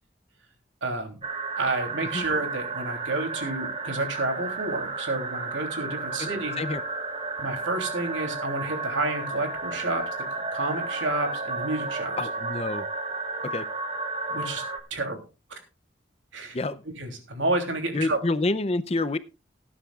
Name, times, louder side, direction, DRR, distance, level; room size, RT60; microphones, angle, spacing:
voice 1, 0.8-1.2 1.6-6.5 7.4-10.0 10.3-12.2 14.3-14.6 14.9-15.2 15.5-15.6 16.3-16.6 17.0-18.2, right 2 dB, 85° right, 4 dB, 3.1 m, -30 dB
sound 1, 1.2-14.8, right 3 dB, 30° right, 1.5 m, -33 dB
voice 2, 12.2-12.8 13.4-13.7 16.5-16.8 17.9-19.2, left 2 dB, 30° left, 14 dB, 0.5 m, -27 dB
19.0 x 10.0 x 2.4 m, 0.29 s
head